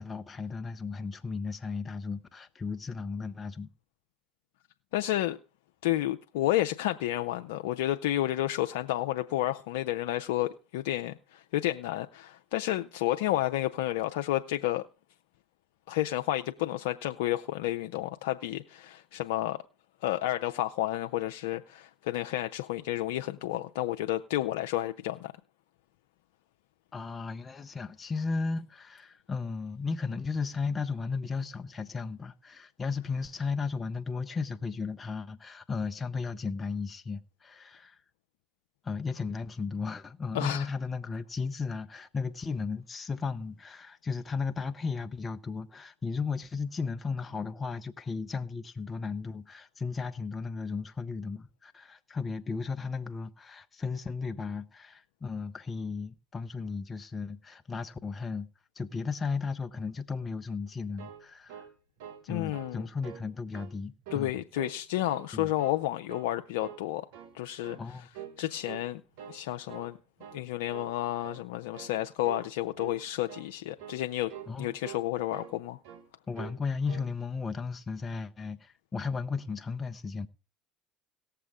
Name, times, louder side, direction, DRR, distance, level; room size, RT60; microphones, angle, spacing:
voice 1, 0.0-3.7 26.9-38.0 38.8-58.5 58.8-61.7 62.2-64.3 65.3-65.5 67.8-68.1 74.5-74.7 76.3-80.3, left 4 dB, 30° left, 0.9 m, -35 dB
voice 2, 4.9-5.4 5.8-14.8 15.9-19.6 20.0-25.3 40.3-40.7 62.3-62.9 64.1-67.1 67.3-67.8 68.4-69.0 69.3-70.0 70.3-74.3 74.6-75.8, left 14 dB, 80° left, 0.5 m, -31 dB
sound 1, 60.7-62.3 62.5-62.8 63.0-63.7 64.0-64.8 65.1-65.8 66.1-66.3 66.6-67.4 67.6-67.9 68.1-68.4 68.7-69.4 69.7-69.9 70.2-70.4 70.7-71.0 71.2-71.5 71.7-72.0 72.2-72.5 72.7-73.0 73.3-73.5 73.8-74.0 74.3-74.5 74.8-75.6 75.8-76.1 76.3-76.6 76.9-77.1, right 9 dB, 75° right, 1.4 m, -45 dB
18.0 x 6.8 x 3.6 m
hypercardioid pair, 75°, 0 cm